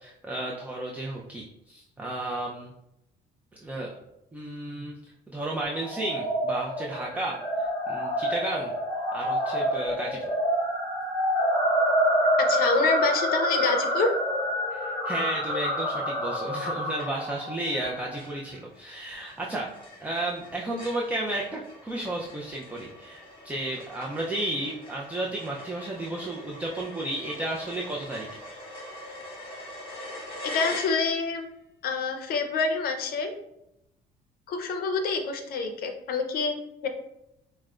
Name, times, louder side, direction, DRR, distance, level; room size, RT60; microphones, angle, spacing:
voice 1, 0.0-2.7 3.6-4.0 4.3-5.0 5.3-8.7 9.1-10.2 14.7-19.7 20.0-28.3, right 1 dB, 10° right, -2 dB, 0.4 m, -33 dB
sound 1, 5.8-18.2, equal, 15° left, 0.9 m, -27 dB
voice 2, 12.4-14.1 30.4-31.5 31.8-33.3 34.5-36.9, left 4 dB, 60° left, 5 dB, 0.6 m, -27 dB
sound 2, 17.0-17.4 17.8-17.9 18.2-31.4, left 1 dB, 30° left, 1.3 m, -43 dB
4.8 x 2.1 x 2.3 m, 0.85 s
cardioid pair, 110°, 17 cm